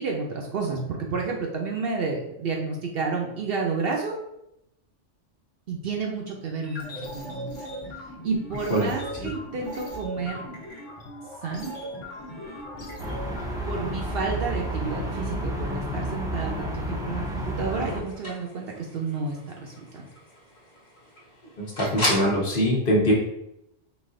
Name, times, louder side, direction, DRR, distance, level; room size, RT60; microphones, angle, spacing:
voice 1, 0.0-4.2 5.7-7.5 8.2-10.5 11.4-11.7 13.6-20.0, right 4 dB, 60° right, 0 dB, 0.7 m, -30 dB
sound 1, 6.6-13.4, equal, 75° left, 1.2 m, -38 dB
sound 2, 13.0-18.0, equal, 5° right, 0.4 m, -30 dB
sound 3, 17.2-22.4, left 1 dB, 25° left, 1.2 m, -35 dB
voice 2, 21.6-23.1, equal, 50° left, -2 dB, 1.1 m, -23 dB
4.1 x 2.7 x 3.6 m, 0.82 s
omnidirectional pair, 1.2 m